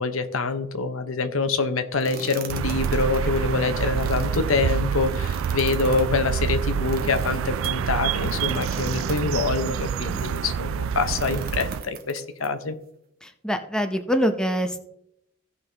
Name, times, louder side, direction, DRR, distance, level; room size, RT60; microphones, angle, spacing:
voice 1, 0.0-12.7, left 3 dB, 80° left, 9 dB, 0.8 m, -25 dB
sound 1, 2.0-10.6 11.0-12.5, right 4 dB, 50° right, 1.1 m, -41 dB
sound 2, 2.5-11.8, right 7 dB, 70° right, 0.3 m, -27 dB
voice 2, 13.2-14.8, equal, 5° left, 5 dB, 0.7 m, -24 dB
16.0 x 5.6 x 3.3 m, 0.77 s
head